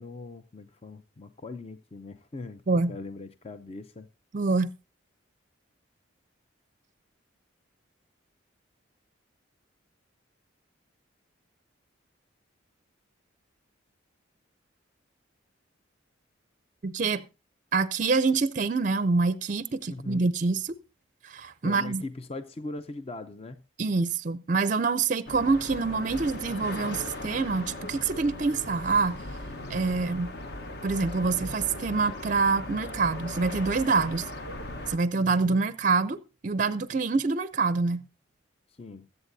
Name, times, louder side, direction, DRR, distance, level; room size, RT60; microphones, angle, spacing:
voice 1, 0.0-4.1 19.9-20.3 21.6-23.6 35.2-35.6 38.7-39.1, left 3 dB, 30° left, 0.5 m, -40 dB
voice 2, 4.3-4.7 16.8-17.2 17.7-20.7 21.2-22.0 23.8-29.2 29.7-30.3 30.8-34.3 34.9-38.0, right 4 dB, 40° right, 0.4 m, -26 dB
sound 1, 25.3-35.0, left 1 dB, 55° left, 1.1 m, -38 dB
22.0 x 8.0 x 2.7 m
head